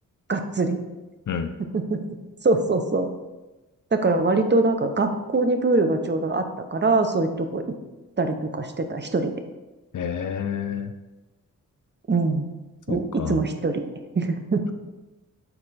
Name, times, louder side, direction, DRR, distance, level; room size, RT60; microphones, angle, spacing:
voice 1, 0.3-0.8 1.7-2.0 2.4-3.1 3.9-7.6 8.2-9.3 12.1-12.4 12.9-13.9 14.2-14.7, right 3 dB, 30° right, 7 dB, 0.8 m, -23 dB
voice 2, 9.9-10.9 12.9-13.4, left 7 dB, 60° left, 8 dB, 0.5 m, -29 dB
6.9 x 4.3 x 4.2 m, 1.1 s
cardioid pair, 75°, 34 cm